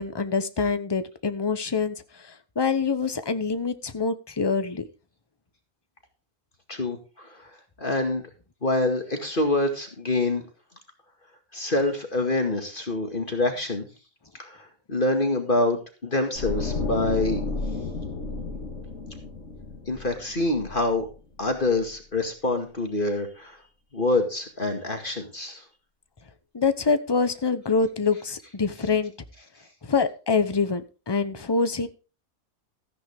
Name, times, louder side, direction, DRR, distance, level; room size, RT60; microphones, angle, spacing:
voice 1, 0.0-1.9 2.6-4.9 26.5-29.1 29.8-30.8 31.1-31.9, left 4 dB, 20° left, 11 dB, 0.8 m, -25 dB
voice 2, 6.7-7.5 7.8-8.2 8.6-10.4 11.5-13.9 14.4-17.4 19.9-21.1 21.4-23.6 23.9-25.6, left 2 dB, 40° left, 4 dB, 2.2 m, -26 dB
sound 1, 16.4-21.4 21.7-22.0, left 3 dB, 55° left, 2.2 m, -32 dB
14.5 x 9.5 x 3.5 m, 0.35 s
omnidirectional pair, 1.5 m